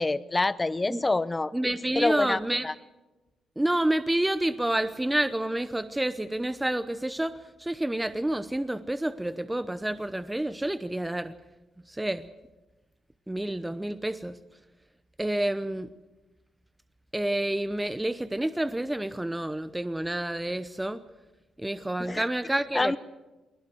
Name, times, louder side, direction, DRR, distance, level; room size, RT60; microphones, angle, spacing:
voice 1, 0.0-1.5 2.0-2.4 2.6-2.7 22.0-22.2 22.7-23.0, left 2 dB, 25° left, 18 dB, 0.8 m, -26 dB
voice 2, 1.5-2.7 3.6-7.3 7.6-11.3 11.9-12.3 13.3-14.4 15.2-15.9 17.1-21.0 21.6-23.0, right 1 dB, 10° right, 13 dB, 0.8 m, -29 dB
20.5 x 18.0 x 7.9 m, 1.1 s
supercardioid pair, 60°, 0 cm